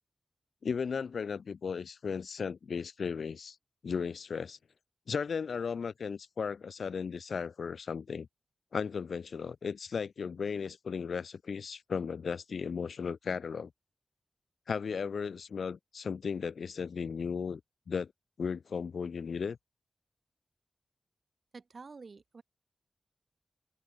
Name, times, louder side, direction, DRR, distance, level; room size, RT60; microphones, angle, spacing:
voice 1, 0.6-3.6 3.8-4.6 5.1-8.3 8.7-13.7 14.7-17.6 17.9-18.1 18.4-19.6, left 6 dB, 75° left, 2.2 m, -35 dB
voice 2, 21.5-22.4, right 4 dB, 45° right, 6.7 m, -49 dB
open air
wide cardioid pair, 155°, 0 cm